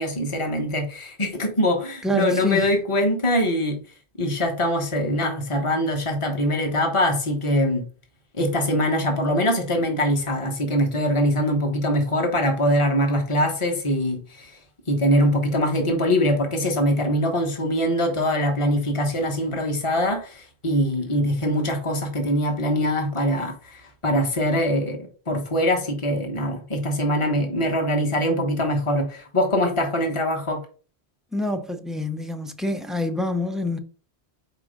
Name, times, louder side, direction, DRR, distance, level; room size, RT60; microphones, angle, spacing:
voice 1, 0.0-3.8 4.2-7.8 8.3-14.6 14.9-30.6, equal, 30° left, 1.3 m, -23 dB
voice 2, 2.0-2.7 31.3-33.8, left 1 dB, ahead, 0.4 m, -26 dB
4.8 x 4.4 x 5.1 m
omnidirectional pair, 1.1 m